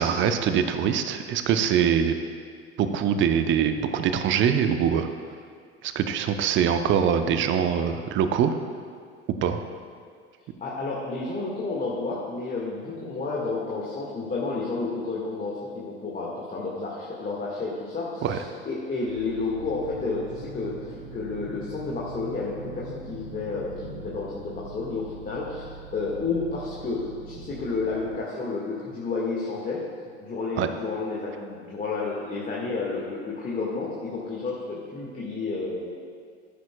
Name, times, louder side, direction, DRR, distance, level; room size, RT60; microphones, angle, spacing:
voice 1, 0.0-2.1 2.8-5.1 5.8-8.5 9.4-9.6 18.2-18.4 30.6-30.7, right 8 dB, 35° right, 8 dB, 0.7 m, -23 dB
voice 2, 10.6-29.8 30.2-36.0, left 3 dB, 25° left, -5 dB, 1.8 m, -31 dB
sound 1, 19.1-28.2, right 4 dB, 75° right, 2.2 m, -42 dB
13.5 x 9.9 x 2.3 m, 2.1 s
hypercardioid pair, 75°, 33 cm